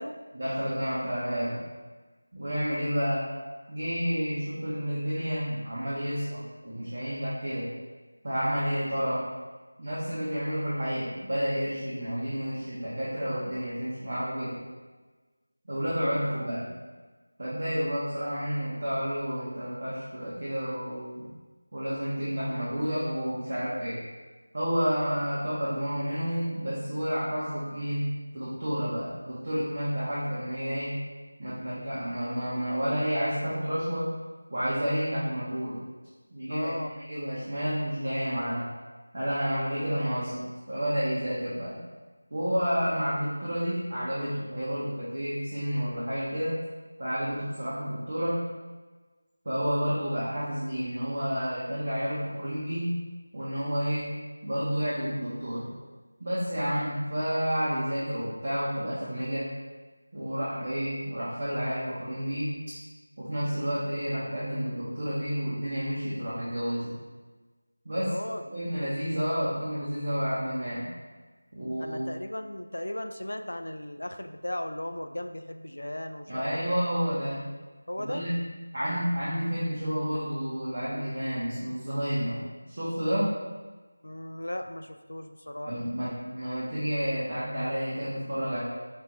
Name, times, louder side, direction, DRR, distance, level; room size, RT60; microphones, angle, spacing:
voice 1, 0.3-1.6 2.3-3.2 3.7-7.7 8.2-9.2 9.8-14.6 15.7-16.7 17.4-21.3 21.7-24.0 24.5-28.1 28.3-31.0 31.4-34.1 34.5-35.8 36.3-38.6 39.1-41.8 42.3-46.6 47.0-48.4 49.4-53.0 53.3-54.1 54.4-55.7 56.2-59.5 60.1-62.5 63.2-66.9 67.8-68.2 68.5-70.9 71.5-72.0 76.3-77.4 78.0-78.4 78.7-83.3 85.7-88.6, equal, 30° right, -9 dB, 0.7 m, -30 dB
voice 2, 36.5-36.9 67.9-68.4 71.8-76.5 77.9-78.2 84.0-85.7, left 1 dB, 85° left, 7 dB, 0.3 m, -36 dB
5.1 x 2.4 x 3.0 m, 1.3 s
figure-of-eight pair, 180°, 0 cm